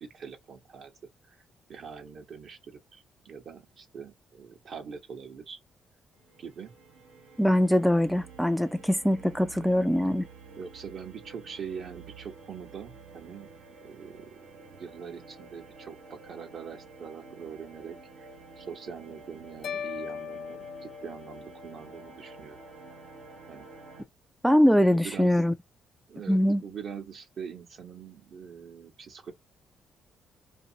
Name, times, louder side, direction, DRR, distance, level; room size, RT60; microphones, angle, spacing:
voice 1, 0.0-0.9 1.3-1.4 1.7-5.6 6.4-6.7 9.5-9.9 10.6-13.5 13.8-18.3 18.6-22.6 23.5-23.7 24.9-25.4 26.1-29.3, right 6 dB, 60° right, 1.1 m, -43 dB
sound 1, 6.1-24.0, right 4 dB, 90° right, 1.3 m, -50 dB
voice 2, 7.4-10.3 24.4-25.5 26.3-26.6, equal, ahead, 0.3 m, -22 dB
sound 2, 19.6-21.9, left 9 dB, 75° left, 0.4 m, -39 dB
2.7 x 2.6 x 2.8 m
cardioid pair, 90°, 0 cm